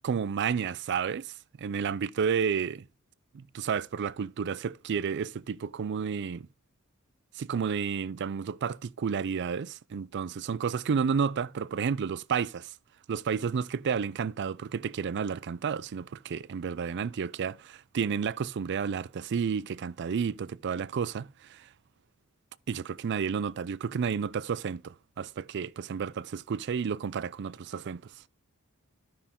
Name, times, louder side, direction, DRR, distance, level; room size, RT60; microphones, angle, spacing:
voice 1, 0.0-1.3 1.6-2.9 3.3-6.5 7.3-12.7 13.1-21.7 22.7-28.1, right 6 dB, 55° right, 0.4 m, -31 dB
12.5 x 5.6 x 3.6 m
head